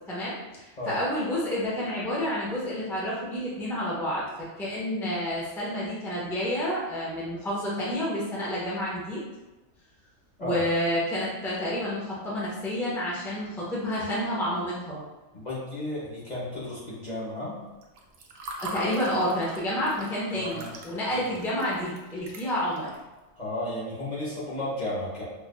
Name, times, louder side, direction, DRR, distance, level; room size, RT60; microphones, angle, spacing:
voice 1, 0.1-4.2 4.6-9.2 10.4-15.0 18.6-22.9, equal, 5° left, -7 dB, 0.6 m, -29 dB
voice 2, 15.3-17.6 20.3-20.7 21.1-21.3 23.4-25.2, left 1 dB, 35° left, -7 dB, 0.9 m, -33 dB
Water / Fill (with liquid), 17.8-22.9, right 1 dB, 75° right, 0.9 m, -41 dB
5.1 x 2.4 x 2.2 m, 1.1 s
omnidirectional pair, 1.4 m